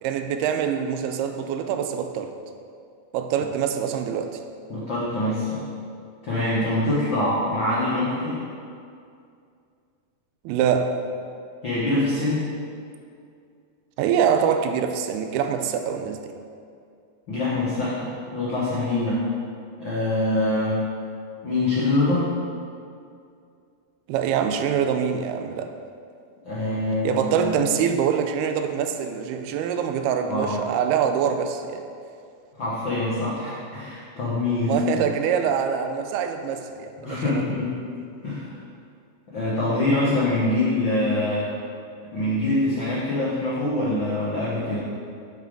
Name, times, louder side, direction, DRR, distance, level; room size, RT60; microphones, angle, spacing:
voice 1, 0.0-2.3 3.1-4.3 10.5-11.0 14.0-16.3 24.1-25.7 27.0-31.8 34.7-37.4, right 7 dB, 85° right, 7 dB, 2.5 m, -24 dB
voice 2, 4.7-5.6 6.2-8.4 11.6-12.4 17.3-19.2 19.8-20.8 21.4-22.3 26.4-27.5 30.3-30.6 32.6-35.0 37.0-37.7 38.2-38.4 39.3-41.5 42.1-44.8, left 2 dB, 65° left, -8 dB, 1.1 m, -24 dB
12.0 x 5.8 x 3.7 m, 2.4 s
omnidirectional pair, 4.5 m